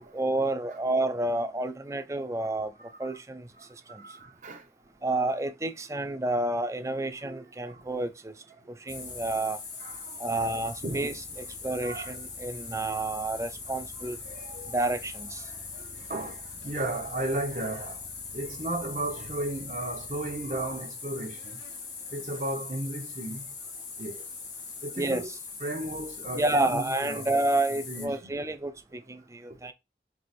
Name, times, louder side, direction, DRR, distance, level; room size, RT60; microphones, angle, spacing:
voice 1, 0.0-2.7 3.0-3.5 3.9-4.2 5.0-8.3 8.7-9.6 10.2-14.2 14.7-15.5 25.0-25.2 26.3-29.7, right 2 dB, 15° right, 0.4 m, -30 dB
voice 2, 2.8-3.2 3.6-4.7 7.2-7.9 8.6-8.7 9.8-10.5 10.8-12.1 14.0-14.9 15.4-21.6 22.1-23.5 24.0-24.3 24.8-25.3 25.6-27.3 27.9-28.3, right 1 dB, 45° right, 0.9 m, -36 dB
sound 1, 8.9-28.1, left 4 dB, 85° left, 1.6 m, -41 dB
4.7 x 2.5 x 4.1 m
head